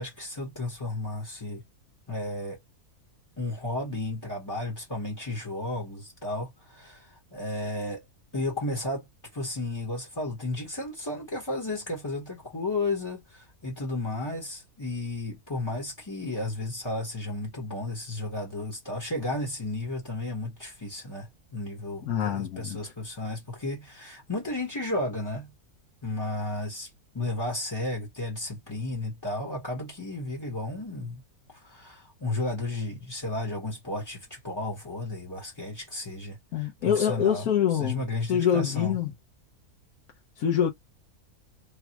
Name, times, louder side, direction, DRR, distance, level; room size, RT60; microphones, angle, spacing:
voice 1, 0.0-1.6 2.1-2.6 3.4-8.0 8.3-9.1 9.3-25.5 26.0-31.2 31.5-39.0, left 2 dB, 20° left, 1.0 m, -33 dB
voice 2, 22.1-22.8 36.5-39.1 40.4-40.7, left 9 dB, 80° left, 1.3 m, -25 dB
3.4 x 2.3 x 2.9 m
omnidirectional pair, 1.6 m